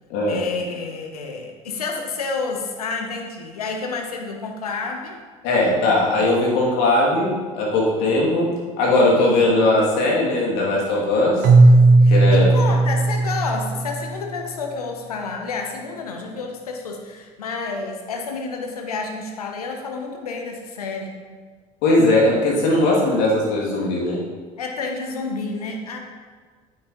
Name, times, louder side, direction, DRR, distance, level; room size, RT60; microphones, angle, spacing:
voice 1, 0.3-5.2 8.0-8.3 9.2-9.4 12.0-21.2 24.6-26.0, left 4 dB, 80° left, 3 dB, 0.9 m, -30 dB
voice 2, 5.4-8.5 8.8-11.5 12.1-12.5 21.8-24.2, left 2 dB, 65° left, -4 dB, 2.4 m, -19 dB
Keyboard (musical), 11.4-14.4, right 2 dB, 55° right, 0.9 m, -15 dB
9.0 x 8.5 x 3.0 m, 1.5 s
figure-of-eight pair, 60°, 19 cm